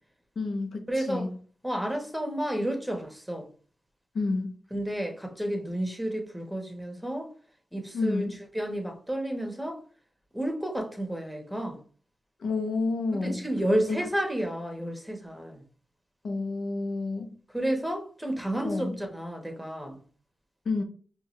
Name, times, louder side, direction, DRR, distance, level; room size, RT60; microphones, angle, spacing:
voice 1, 0.4-1.3 4.1-4.6 7.9-8.4 12.4-13.4 13.9-14.0 16.2-17.3 18.6-19.0 20.6-20.8, left 3 dB, 75° left, 0.8 m, -29 dB
voice 2, 0.9-1.3 1.6-3.5 4.7-7.3 7.7-8.3 8.5-9.8 10.3-11.8 13.2-15.6 17.5-20.0, right 1 dB, 5° right, 1.2 m, -31 dB
4.6 x 2.4 x 3.1 m
cardioid pair, 50°, 0 cm